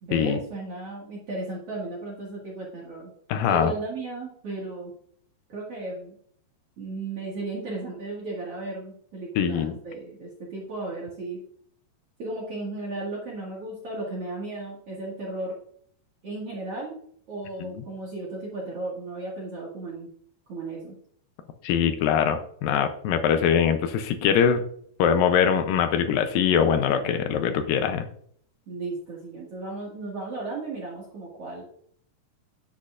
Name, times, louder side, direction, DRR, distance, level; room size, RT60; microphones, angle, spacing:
voice 1, 0.0-3.1 3.5-4.9 5.5-6.2 6.8-11.4 12.2-15.5 16.2-17.0 17.3-20.1 20.5-20.9 24.4-24.5 28.7-31.6, right 2 dB, 45° right, -4 dB, 2.3 m, -35 dB
voice 2, 3.3-3.7 9.4-9.8 17.6-17.7 21.6-24.6 25.0-28.0, left 8 dB, 80° left, 8 dB, 2.1 m, -22 dB
10.5 x 7.6 x 2.5 m, 0.62 s
omnidirectional pair, 4.6 m